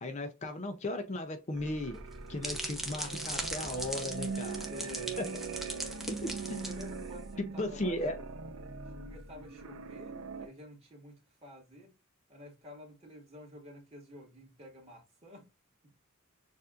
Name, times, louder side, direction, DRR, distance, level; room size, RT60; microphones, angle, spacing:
voice 1, 0.0-2.0 2.3-4.7 6.1-6.6 7.4-8.2, left 1 dB, 30° left, 0.5 m, -36 dB
sound 1, 1.5-10.5, right 4 dB, 70° right, 0.6 m, -42 dB
sound 2, 1.9-7.3, right 1 dB, ahead, 0.7 m, -40 dB
voice 2, 4.7-5.2 6.2-8.2 9.0-11.9 12.3-15.4, left 1 dB, 30° right, 2.0 m, -50 dB
6.8 x 2.6 x 2.4 m
head